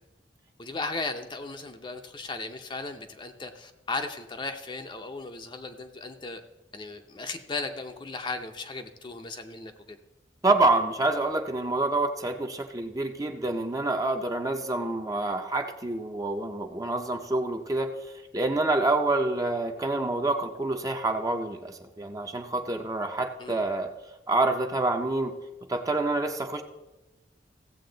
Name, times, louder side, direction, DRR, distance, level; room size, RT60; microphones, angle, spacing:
voice 1, 0.6-6.4 6.7-10.0 23.4-23.7, left 3 dB, 30° left, 6 dB, 0.6 m, -36 dB
voice 2, 10.4-18.0 18.3-23.9 24.3-25.4 25.7-26.6, right 2 dB, 20° right, 5 dB, 0.6 m, -27 dB
15.5 x 7.6 x 3.9 m, 1.1 s
head